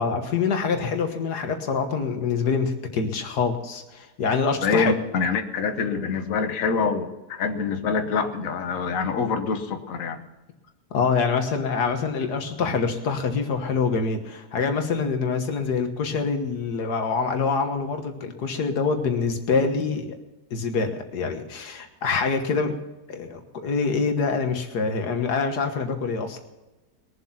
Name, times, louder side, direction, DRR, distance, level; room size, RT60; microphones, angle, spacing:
voice 1, 0.0-5.0 10.9-20.2 20.5-22.7 23.1-26.4, left 5 dB, 90° left, 5 dB, 1.9 m, -25 dB
voice 2, 4.6-10.2, left 5 dB, 60° left, 7 dB, 1.5 m, -25 dB
21.5 x 7.5 x 5.8 m, 1.1 s
omnidirectional pair, 1.7 m